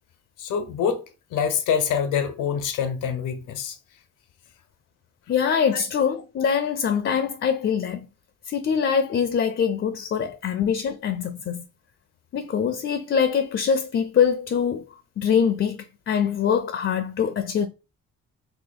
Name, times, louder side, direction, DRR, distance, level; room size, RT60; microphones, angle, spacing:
voice 1, 0.4-1.0 1.3-3.8, left 7 dB, 90° left, 0.9 m, -25 dB
voice 2, 5.3-8.1 8.5-11.6 12.3-14.8 15.2-17.7, left 7 dB, 40° left, 0.5 m, -23 dB
2.9 x 2.8 x 4.0 m
cardioid pair, 90°, 30 cm